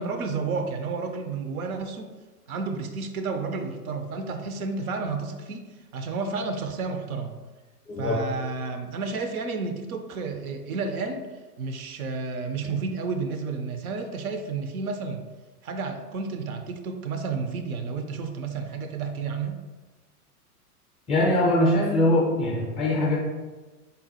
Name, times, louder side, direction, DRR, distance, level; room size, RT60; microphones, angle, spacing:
voice 1, 0.0-2.1 2.5-7.3 8.0-11.2 11.6-15.2 15.6-19.6, right 4 dB, 65° right, 6 dB, 0.6 m, -31 dB
voice 2, 7.9-8.2 21.1-23.2, left 1 dB, 15° left, -2 dB, 0.4 m, -22 dB
3.9 x 2.1 x 4.1 m, 1.2 s
hypercardioid pair, 105°, 46 cm